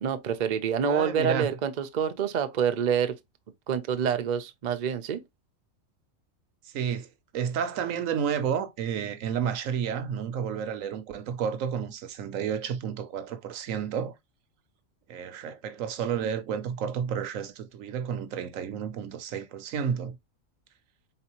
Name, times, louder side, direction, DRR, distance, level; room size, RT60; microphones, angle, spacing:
voice 1, 0.0-3.2 3.7-5.2, right 7 dB, 45° right, 0.6 m, -27 dB
voice 2, 0.9-1.5 6.6-14.1 15.1-20.2, right 8 dB, 80° right, 1.1 m, -31 dB
4.0 x 4.0 x 2.9 m
omnidirectional pair, 1.4 m